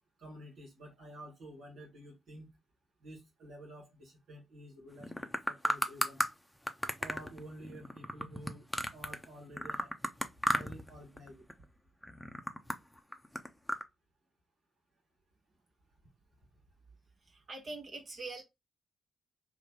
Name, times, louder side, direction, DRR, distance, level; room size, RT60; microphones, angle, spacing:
voice 1, 0.2-2.5 3.0-6.2 7.0-8.7 8.9-9.9 10.5-11.4, right 1 dB, 70° right, 1.1 m, -50 dB
sound 1, 5.0-6.3 6.7-9.2 9.6-10.9 11.2-11.6 12.0-13.8, equal, 5° left, 0.7 m, -34 dB
voice 2, 17.2-18.4, right 3 dB, 50° right, 1.1 m, -43 dB
3.1 x 2.2 x 4.2 m
hypercardioid pair, 40°, 0 cm